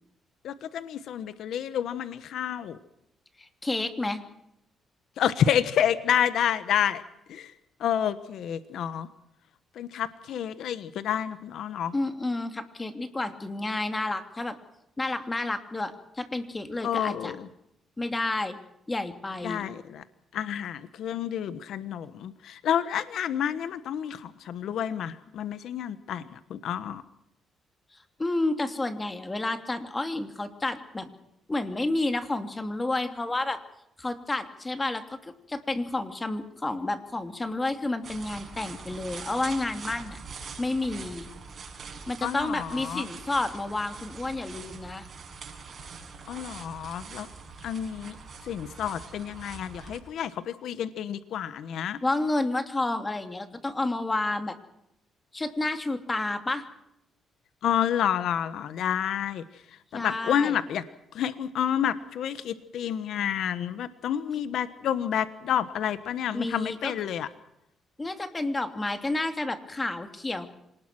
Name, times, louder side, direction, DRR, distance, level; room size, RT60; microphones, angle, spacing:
voice 1, 0.4-2.8 5.2-7.0 7.3-7.5 7.8-9.1 9.8-11.9 16.8-17.5 19.4-20.0 20.3-27.0 42.2-43.1 46.3-47.3 47.6-48.2 48.5-52.0 57.6-59.4 59.9-60.8 61.1-67.3, left 9 dB, 75° left, 13 dB, 1.2 m, -29 dB
voice 2, 3.4-4.2 11.9-14.6 15.0-17.3 18.0-18.6 18.9-19.7 28.2-31.1 31.5-33.6 34.0-40.2 40.6-41.3 42.1-45.1 52.0-54.5 55.3-56.6 59.9-60.6 66.3-66.9 68.0-70.5, left 2 dB, 20° left, 7 dB, 2.8 m, -30 dB
sound 1, 38.0-50.0, right 5 dB, 50° right, 6.2 m, -43 dB
26.5 x 19.5 x 6.2 m, 0.81 s
cardioid pair, 90°, 0 cm